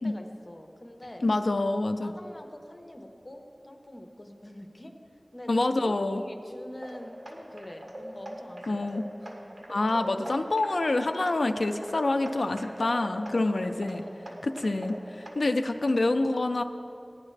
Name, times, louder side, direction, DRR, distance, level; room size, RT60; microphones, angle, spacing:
voice 1, 0.0-1.2 2.0-4.9 5.3-8.9 9.2-9.6 13.3-13.5 14.0-14.5, left 1 dB, 40° left, 4 dB, 1.1 m, -45 dB
voice 2, 1.2-2.1 5.5-6.2 8.7-9.0 9.7-14.0 14.4-16.6, left 2 dB, 85° left, 6 dB, 0.4 m, -27 dB
sound 1, 6.8-15.9, right 1 dB, 70° right, 1.6 m, -43 dB
17.0 x 10.5 x 3.3 m, 2.6 s
wide cardioid pair, 60°, 0 cm